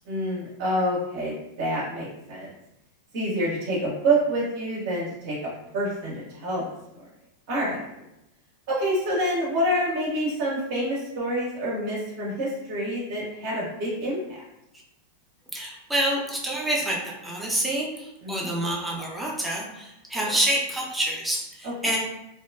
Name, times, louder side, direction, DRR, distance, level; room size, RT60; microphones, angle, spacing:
voice 1, 0.1-2.5 3.1-7.1 7.5-7.8 8.7-14.4 18.2-18.5 20.1-20.4 21.6-21.7, right 1 dB, 50° right, -6 dB, 0.6 m, -27 dB
voice 2, 15.5-22.0, right 1 dB, 5° right, -4 dB, 0.5 m, -27 dB
2.7 x 2.2 x 2.2 m, 0.88 s
figure-of-eight pair, 90°, 0 cm